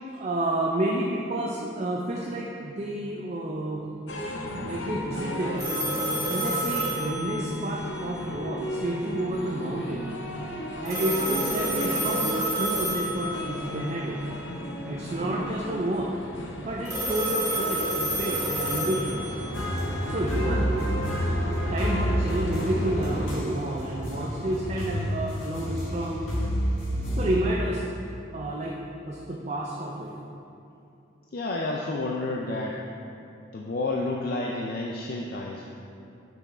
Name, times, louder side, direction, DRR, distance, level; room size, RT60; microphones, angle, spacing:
voice 1, 0.1-3.9 4.6-5.7 6.3-10.1 10.8-14.2 14.8-16.2 16.6-19.4 20.0-20.9 21.7-26.3 27.2-27.8 28.3-28.7 29.1-30.1, right 1 dB, 35° right, -2 dB, 0.4 m, -30 dB
sound 1, 4.1-23.3, equal, 65° left, 0.8 m, -35 dB
sound 2, 5.6-7.9 10.8-13.7 16.8-19.8, right 1 dB, 15° right, 1.5 m, -29 dB
sound 3, 19.5-27.3, equal, 85° left, 1.6 m, -29 dB
voice 2, 31.3-32.8 33.5-35.6, left 2 dB, 45° left, -1 dB, 0.4 m, -30 dB
6.0 x 5.7 x 4.2 m, 2.7 s
head